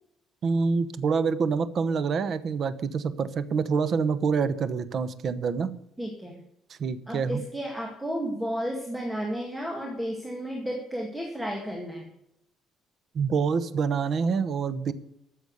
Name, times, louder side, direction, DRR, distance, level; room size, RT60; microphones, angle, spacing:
voice 1, 0.4-5.7 6.8-7.4 13.1-14.9, right 5 dB, 40° right, 13 dB, 1.0 m, -26 dB
voice 2, 6.0-6.4 7.1-12.1, equal, 5° right, 1 dB, 2.0 m, -32 dB
13.5 x 7.1 x 7.9 m, 0.78 s
cardioid pair, 160°, 0 cm